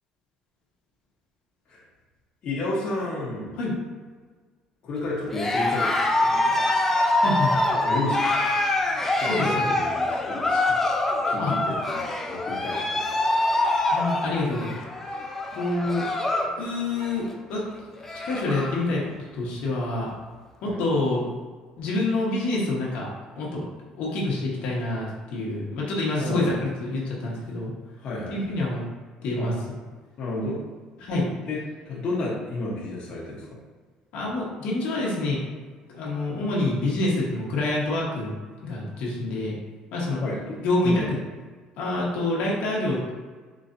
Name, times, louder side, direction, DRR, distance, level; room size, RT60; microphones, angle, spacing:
voice 1, 2.4-3.6 4.8-6.6 7.8-8.3 9.1-10.8 11.3-12.8 20.7-20.8 26.2-26.5 28.0-28.6 29.4-29.5 30.2-30.6 31.5-31.6 31.8-33.4 40.2-40.5 40.8-41.1, left 2 dB, 50° left, -6 dB, 1.0 m, -31 dB
Cheering, 5.3-16.6 16.9-17.3 17.7-17.8 18.0-18.8, left 2 dB, 15° left, 0.5 m, -25 dB
voice 2, 7.2-7.5 9.2-9.7 11.4-11.5 13.9-14.8 15.5-16.0 16.6-17.6 18.2-19.0 19.3-20.1 20.6-21.2 21.8-23.1 23.3-23.6 24.0-27.7 28.3-28.8 29.2-29.5 31.0-31.3 34.1-35.4 35.9-38.4 38.6-39.5 39.9-40.2 40.6-41.0 41.8-43.1, left 2 dB, 70° left, -4 dB, 1.1 m, -27 dB
4.0 x 3.1 x 2.6 m, 1.5 s
cardioid pair, 110°, 2 cm